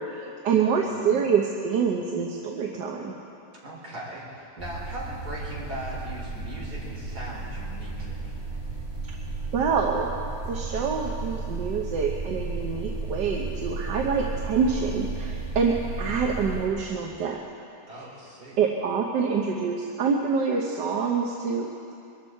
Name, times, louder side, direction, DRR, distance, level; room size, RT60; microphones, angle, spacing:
voice 1, 0.0-3.1 9.5-10.2 10.5-17.4 17.9-18.1 18.6-21.9, right 5 dB, 85° right, 1 dB, 1.6 m, -26 dB
voice 2, 0.6-1.2 3.6-8.3 17.9-18.6, right 1 dB, 70° right, -5 dB, 4.5 m, -39 dB
sound 1, 4.6-16.7, right 3 dB, 15° right, 2.7 m, -34 dB
23.0 x 13.5 x 4.5 m, 2.6 s
omnidirectional pair, 1.8 m